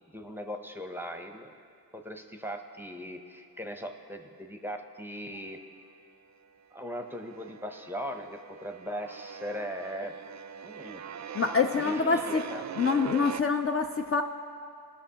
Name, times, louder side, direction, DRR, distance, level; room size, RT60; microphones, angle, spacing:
voice 1, 0.1-1.5 1.9-5.6 6.7-10.1 10.6-11.0 11.8-12.6, equal, 5° right, 5 dB, 0.7 m, -39 dB
sound 1, 5.2-6.0 6.2-13.4, right 8 dB, 45° right, 0.4 m, -42 dB
voice 2, 11.3-12.4 12.8-14.2, left 5 dB, 35° left, 4 dB, 0.4 m, -26 dB
18.5 x 6.3 x 2.8 m, 2.6 s
cardioid pair, 75°, 39 cm